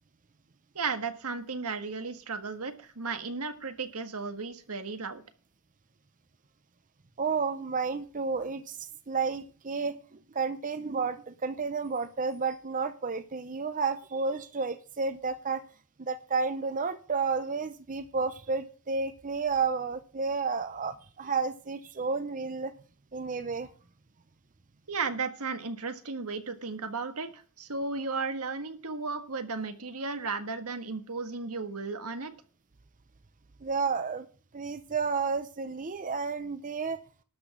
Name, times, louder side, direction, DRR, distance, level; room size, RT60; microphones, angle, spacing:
voice 1, 0.7-5.2 24.9-32.3, right 4 dB, 80° right, 8 dB, 1.7 m, -34 dB
voice 2, 7.2-15.6 16.0-22.7 23.1-23.7 33.6-34.3 34.5-37.0, right 4 dB, 35° right, 11 dB, 0.7 m, -31 dB
12.5 x 6.0 x 8.4 m, 0.39 s
head